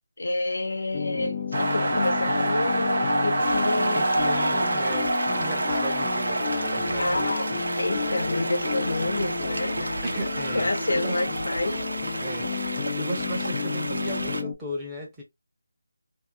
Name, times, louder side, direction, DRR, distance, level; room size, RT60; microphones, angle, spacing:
voice 1, 0.2-4.4 7.0-7.5 7.8-10.0 10.5-11.8, left 2 dB, 70° left, 0.8 m, -29 dB
sound 1, 0.9-14.5, left 6 dB, 25° left, 0.6 m, -32 dB
sound 2, 1.5-13.2, right 2 dB, 40° right, 0.8 m, -28 dB
sound 3, 3.4-14.4, right 2 dB, 90° right, 0.6 m, -33 dB
voice 2, 3.9-7.6 10.0-11.3 12.2-15.2, right 1 dB, 10° right, 0.9 m, -35 dB
2.8 x 2.1 x 2.3 m
figure-of-eight pair, 170°, 0 cm